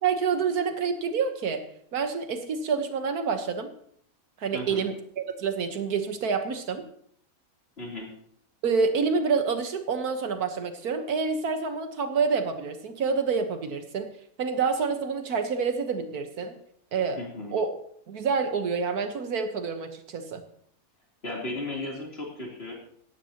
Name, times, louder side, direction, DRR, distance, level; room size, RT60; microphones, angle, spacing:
voice 1, 0.0-1.6 1.9-3.7 4.4-6.8 8.6-14.1 14.4-16.6 16.9-17.2 17.5-17.7 18.1-20.4, right 5 dB, 85° right, 7 dB, 1.7 m, -27 dB
voice 2, 4.5-4.8 7.8-8.1 17.2-17.6 21.2-22.7, left 2 dB, 40° left, -2 dB, 3.6 m, -35 dB
16.5 x 14.0 x 2.9 m, 0.66 s
omnidirectional pair, 1.6 m